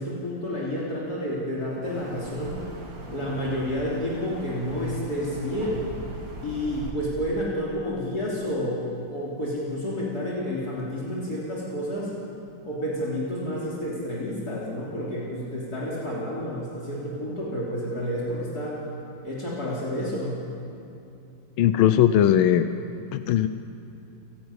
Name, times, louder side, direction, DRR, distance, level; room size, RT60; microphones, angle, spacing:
voice 1, 0.0-2.6 3.1-5.9 6.4-12.1 12.6-18.8 19.2-20.4, equal, 50° left, -4 dB, 3.7 m, -30 dB
sound 1, 1.8-6.9, right 1 dB, 65° right, 3.3 m, -40 dB
voice 2, 21.6-22.7 23.1-23.5, left 10 dB, 85° left, 10 dB, 1.5 m, -19 dB
29.5 x 12.0 x 9.5 m, 2.7 s
omnidirectional pair, 2.2 m